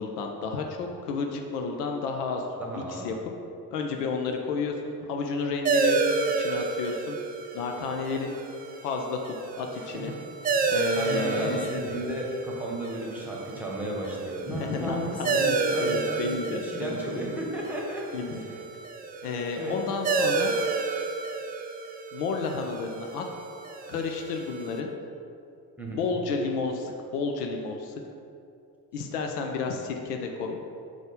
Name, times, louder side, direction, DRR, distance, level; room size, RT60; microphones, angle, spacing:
voice 1, 0.0-3.1 3.7-7.2 7.5-8.4 8.8-10.1 10.7-11.7 14.5-17.1 18.1-18.4 19.2-20.5 22.1-23.2 23.9-24.9 25.9-27.9 28.9-30.6, left 4 dB, 75° left, 3 dB, 0.6 m, -31 dB
voice 2, 2.6-3.1 9.9-10.0 10.9-18.0 18.3-18.5 19.6-19.8 25.8-26.0, right 1 dB, 5° right, -3 dB, 1.3 m, -34 dB
sound 1, 5.6-24.8, right 4 dB, 20° right, 0.3 m, -31 dB
4.8 x 4.1 x 5.1 m, 2.5 s
figure-of-eight pair, 45°, 48 cm